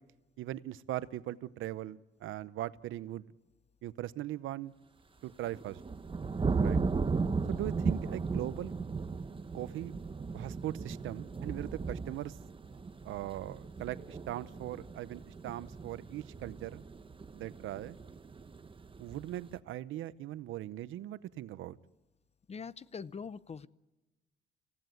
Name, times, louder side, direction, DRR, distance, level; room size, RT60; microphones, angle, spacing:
voice 1, 0.4-3.3 3.8-4.7 5.2-5.8 6.6-6.8 7.5-8.7 9.5-9.9 10.3-12.4 13.0-16.8 17.3-18.0 19.0-21.8, right 14 dB, 80° right, 16 dB, 0.8 m, -40 dB
sound 1, 5.3-19.5, right 4 dB, 25° right, 1.0 m, -36 dB
voice 2, 7.3-7.6 22.5-23.7, left 5 dB, 30° left, 17 dB, 0.7 m, -43 dB
26.0 x 16.5 x 9.2 m, 1.1 s
cardioid pair, 90°, 20 cm